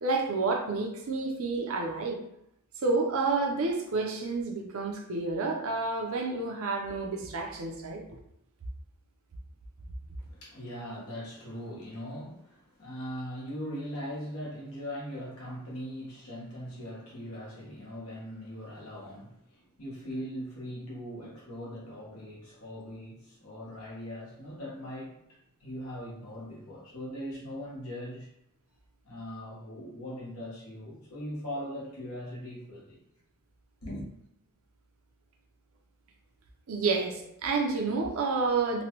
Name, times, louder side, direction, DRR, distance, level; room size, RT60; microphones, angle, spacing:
voice 1, 0.0-2.2 2.8-8.0 36.7-38.8, right 3 dB, 65° right, 2 dB, 0.6 m, -29 dB
voice 2, 10.2-28.3 29.0-33.0 33.8-34.0, equal, 70° left, -4 dB, 1.1 m, -40 dB
3.0 x 2.2 x 2.9 m, 0.78 s
head